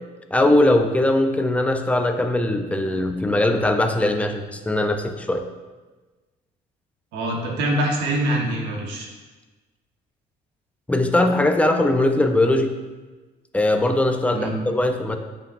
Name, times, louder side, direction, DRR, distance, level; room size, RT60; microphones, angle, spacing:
voice 1, 0.3-5.4 10.9-12.7 13.5-15.2, left 1 dB, 10° left, 6 dB, 0.5 m, -20 dB
voice 2, 7.1-9.1 14.3-14.5, right 1 dB, 85° right, 0 dB, 1.3 m, -24 dB
8.2 x 5.2 x 2.6 m, 1.2 s
cardioid pair, 110°, 17 cm